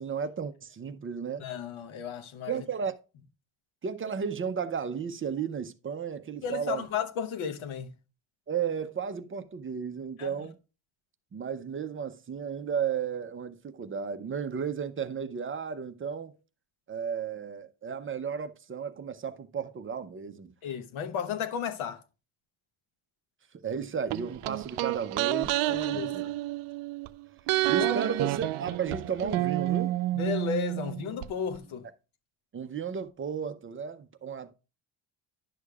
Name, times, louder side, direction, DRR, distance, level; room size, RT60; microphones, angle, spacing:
voice 1, 0.0-1.5 2.5-3.0 3.8-6.9 8.5-10.6 11.3-16.4 16.9-20.5 23.6-26.2 27.7-30.0 32.5-34.5, right 7 dB, 25° right, 0.5 m, -34 dB
voice 2, 1.4-2.6 6.4-7.9 10.2-10.5 20.6-22.0 25.7-26.3 27.8-27.9 30.1-31.9, left 7 dB, 70° left, 1.1 m, -34 dB
sound 1, 24.1-27.1 27.5-31.3 31.5-31.6, right 17 dB, 80° right, 0.6 m, -29 dB
11.0 x 6.5 x 2.3 m
cardioid pair, 165°, 49 cm